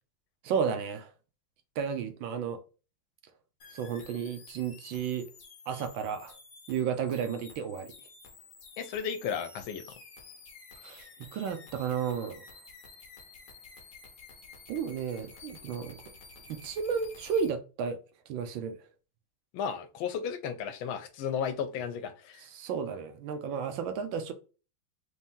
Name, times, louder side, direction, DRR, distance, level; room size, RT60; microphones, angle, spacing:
voice 1, 0.4-1.1 1.8-2.6 3.7-5.3 5.7-6.4 6.7-7.9 10.8-12.4 14.7-16.0 16.5-18.0 18.3-18.8 22.5-24.3, right 7 dB, 75° right, 1.3 m, -33 dB
sound 1, 3.6-17.5, left 4 dB, 50° left, 1.2 m, -52 dB
voice 2, 8.8-9.8 19.5-22.4, left 7 dB, 85° left, 1.4 m, -34 dB
4.2 x 2.6 x 3.5 m
omnidirectional pair, 2.3 m